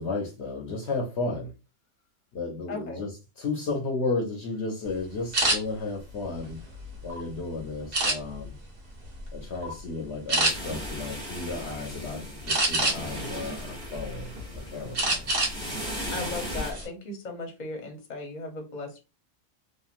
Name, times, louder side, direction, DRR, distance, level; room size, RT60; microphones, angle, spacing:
voice 1, 0.0-1.5 2.3-6.6 7.0-8.6 9.3-14.3 14.6-15.3, left 3 dB, 65° left, 1.0 m, -33 dB
voice 2, 2.7-3.1 16.1-19.0, left 3 dB, 40° left, 0.9 m, -37 dB
sound 1, 5.3-5.6 6.2-7.2 7.9-8.5 9.0-9.3 9.6-9.8 10.3-10.5 12.5-13.2 13.7-14.4 14.9-15.6 15.9-16.1 16.5-16.9, right 2 dB, 50° right, 1.1 m, -25 dB
sound 2, 10.4-16.7, equal, 5° left, 1.0 m, -37 dB
3.0 x 2.4 x 2.4 m
omnidirectional pair, 1.3 m